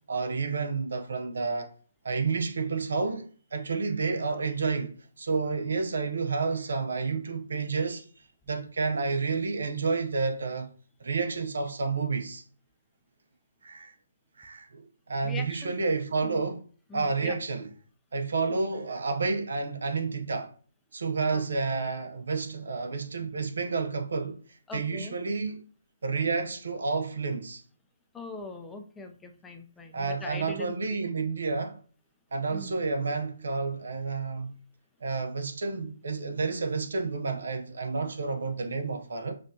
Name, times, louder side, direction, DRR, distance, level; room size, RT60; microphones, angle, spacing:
voice 1, 0.1-1.7 2.0-3.3 3.5-8.0 8.5-10.7 11.0-12.4 13.6-13.9 14.4-16.6 16.9-17.7 18.1-20.5 20.9-24.4 24.7-25.6 26.0-27.6 29.9-31.8 32.3-34.5 35.0-39.3, right 4 dB, 65° right, 0.8 m, -30 dB
voice 2, 15.2-15.7 16.2-16.4 16.9-17.4 18.5-18.6 21.3-21.5 24.7-25.2 28.1-31.0 32.5-32.7, left 3 dB, 10° left, 0.5 m, -41 dB
5.2 x 2.4 x 2.7 m
figure-of-eight pair, 140°, 0 cm